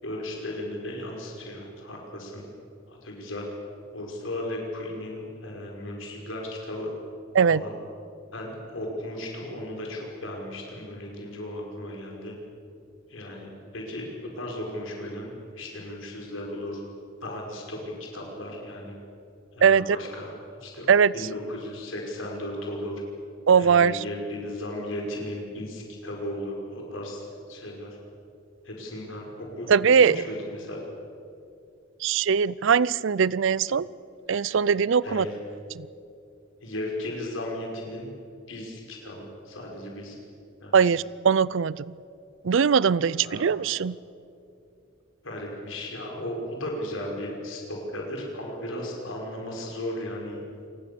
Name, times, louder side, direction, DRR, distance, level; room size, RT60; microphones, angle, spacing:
voice 1, 0.0-2.5 2.9-3.5 3.9-7.0 7.5-7.8 8.3-12.3 13.1-16.8 17.2-18.9 19.5-23.0 23.5-27.9 28.6-29.7 30.0-30.8 34.3-34.4 35.0-35.4 36.6-38.1 38.5-40.2 40.6-40.9 43.2-43.5 45.2-50.4, left 1 dB, 75° left, 0 dB, 5.5 m, -36 dB
voice 2, 19.6-20.0 20.9-21.1 23.5-24.0 29.7-30.2 32.0-33.9 34.3-35.3 35.7-35.9 40.7-41.8 42.4-44.0, right 6 dB, 65° right, 21 dB, 0.5 m, -21 dB
28.0 x 20.0 x 7.0 m, 2.5 s
head